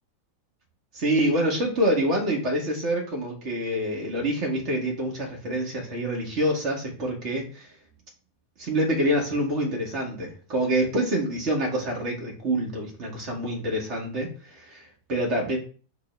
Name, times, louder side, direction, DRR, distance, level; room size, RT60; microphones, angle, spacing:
voice 1, 0.9-7.7 8.6-15.6, right 1 dB, 40° right, -1 dB, 1.2 m, -26 dB
6.6 x 2.2 x 3.2 m, 0.39 s
figure-of-eight pair, 90°, 0 cm